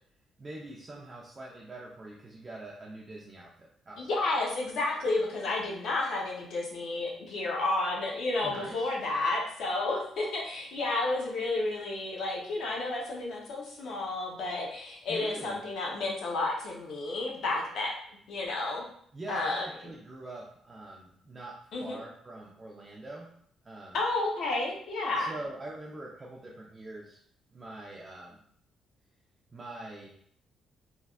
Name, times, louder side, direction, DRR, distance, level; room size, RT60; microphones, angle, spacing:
voice 1, 0.4-4.0 8.4-8.9 15.1-15.6 19.1-21.5 21.8-23.3 23.6-24.0 25.2-27.2 27.5-28.4 29.5-30.1, right 2 dB, 20° right, -3 dB, 0.3 m, -44 dB
voice 2, 4.0-18.0 18.3-18.9 19.3-19.6 21.7-22.0 23.9-25.3, left 2 dB, 65° left, -2 dB, 0.7 m, -31 dB
3.2 x 2.4 x 2.3 m, 0.64 s
cardioid pair, 165°, 0 cm